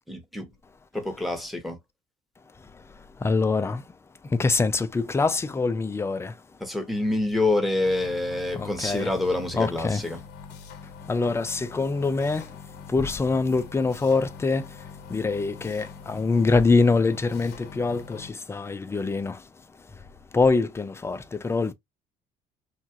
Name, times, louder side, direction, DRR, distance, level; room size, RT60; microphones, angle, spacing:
voice 1, 0.1-0.5 0.9-1.8 6.6-10.2, left 2 dB, ahead, 0.9 m, -27 dB
voice 2, 3.2-3.8 4.2-6.4 8.5-9.1 9.5-10.0 11.1-12.5 12.9-14.8 15.1-19.4 20.3-21.7, left 3 dB, 15° left, 0.4 m, -24 dB
sound 1, 7.8-18.3, left 6 dB, 80° left, 0.8 m, -44 dB
3.0 x 2.3 x 2.7 m
cardioid pair, 110°, 17 cm